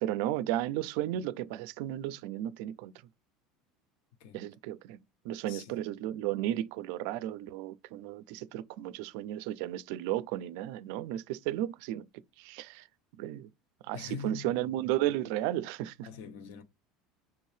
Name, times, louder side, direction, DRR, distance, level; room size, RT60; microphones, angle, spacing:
voice 1, 0.0-3.0 4.3-5.0 5.2-12.1 12.4-12.9 13.2-13.5 13.8-16.1, right 13 dB, 70° right, 0.4 m, -34 dB
voice 2, 5.5-5.8 13.9-14.6 16.0-16.6, left 6 dB, 75° left, 0.7 m, -43 dB
5.7 x 2.7 x 3.2 m
cardioid pair, 150°, 0 cm